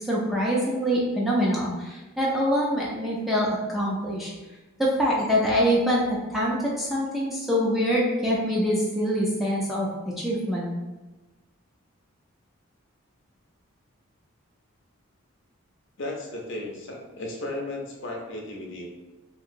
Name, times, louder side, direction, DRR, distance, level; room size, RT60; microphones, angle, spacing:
voice 1, 0.1-4.3 4.8-9.9 10.2-10.7, equal, ahead, -6 dB, 0.3 m, -24 dB
voice 2, 16.0-18.9, left 2 dB, 55° left, -1 dB, 0.6 m, -35 dB
2.8 x 2.8 x 2.5 m, 1.1 s
head